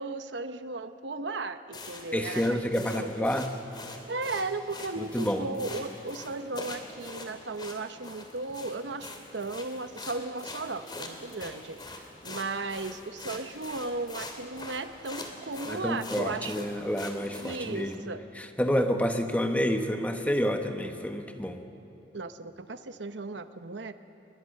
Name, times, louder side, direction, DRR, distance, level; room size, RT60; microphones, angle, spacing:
voice 1, 0.0-3.3 4.1-16.7 17.4-18.2 22.1-23.9, right 3 dB, 80° right, 10 dB, 1.0 m, -36 dB
sound 1, 1.7-18.0, left 2 dB, 25° left, 2.6 m, -44 dB
voice 2, 2.1-3.5 5.0-5.5 15.7-18.0 18.4-21.6, equal, 10° left, 5 dB, 1.3 m, -29 dB
29.5 x 22.0 x 6.6 m, 2.8 s
head